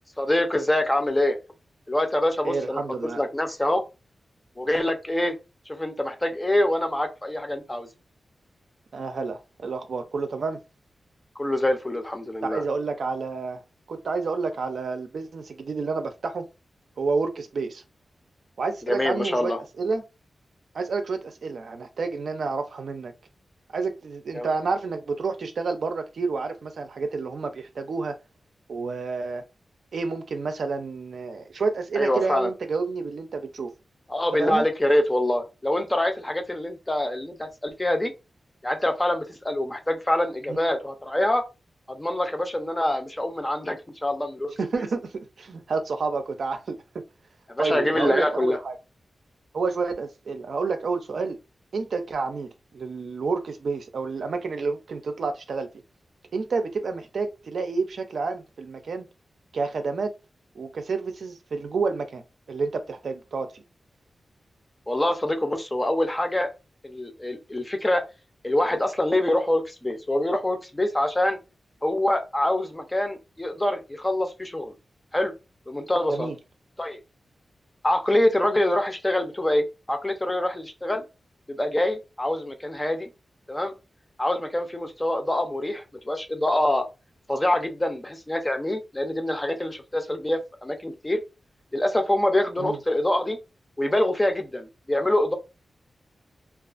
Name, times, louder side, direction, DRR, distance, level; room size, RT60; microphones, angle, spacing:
voice 1, 0.2-1.4 1.9-2.8 3.2-3.8 4.6-5.4 5.7-7.9 11.4-12.6 18.8-19.6 24.3-24.5 32.0-32.5 34.1-38.1 38.6-41.4 41.9-44.5 47.5-48.6 64.9-66.5 66.8-68.0 68.4-71.4 71.8-74.7 75.1-75.3 75.7-76.3 76.8-77.0 77.8-81.0 81.5-83.1 83.5-83.7 84.2-86.9 87.3-91.2 91.7-93.4 93.8-95.3, left 1 dB, 15° left, 0.5 m, -25 dB
voice 2, 2.4-3.2 8.9-10.6 12.4-13.6 13.9-16.5 17.0-17.8 18.6-19.5 19.8-20.0 20.7-23.1 23.7-28.1 28.7-29.4 29.9-33.7 34.4-34.6 40.5-40.6 44.6-46.8 47.6-48.8 49.5-51.4 51.7-55.7 56.3-59.0 59.5-60.1 60.6-62.2 62.5-63.6 76.1-76.4 92.6-92.8, right 4 dB, 75° right, 0.5 m, -29 dB
2.4 x 2.3 x 2.4 m
wide cardioid pair, 100°, 0 cm